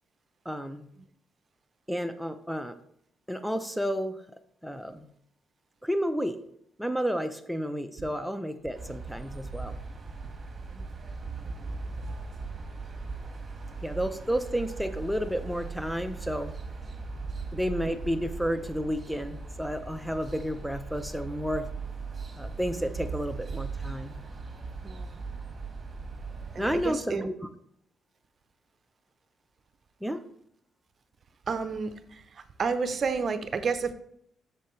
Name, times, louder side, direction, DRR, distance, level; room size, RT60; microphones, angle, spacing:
voice 1, 0.5-0.9 1.9-2.7 3.3-4.2 4.6-5.1 5.8-6.4 6.8-9.8 13.8-16.6 17.5-21.7 22.4-24.1 26.6-27.4 30.0-30.2, equal, ahead, 9 dB, 0.6 m, -31 dB
sound 1, 8.7-26.9, right 4 dB, 30° right, 1.6 m, -39 dB
voice 2, 24.8-25.1 26.5-27.3 31.5-31.9 32.6-33.9, right 5 dB, 45° right, 11 dB, 0.7 m, -30 dB
8.1 x 6.7 x 3.2 m, 0.69 s
cardioid pair, 90°, 0 cm